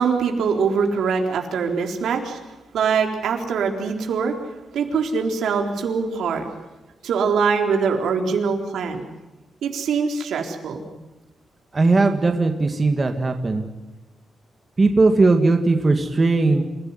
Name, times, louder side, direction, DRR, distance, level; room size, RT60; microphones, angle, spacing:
voice 1, 0.0-2.4 2.7-4.4 4.7-6.5 7.0-9.0 9.6-10.9, right 5 dB, 85° right, 3 dB, 3.9 m, -23 dB
voice 2, 11.7-13.7 14.8-16.6, right 3 dB, 25° right, 5 dB, 2.0 m, -18 dB
28.0 x 17.0 x 9.8 m, 1.1 s
wide cardioid pair, 175°, 0 cm